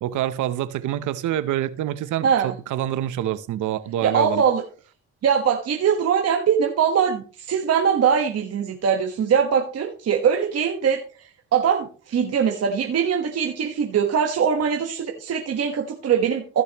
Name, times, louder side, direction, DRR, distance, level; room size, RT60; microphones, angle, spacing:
voice 1, 0.0-4.4, right 12 dB, 80° right, 0.7 m, -26 dB
voice 2, 2.2-2.5 4.0-4.6 5.2-11.0 11.5-16.6, right 7 dB, 55° right, 1.3 m, -22 dB
15.0 x 6.8 x 3.0 m
cardioid pair, 90°, 30 cm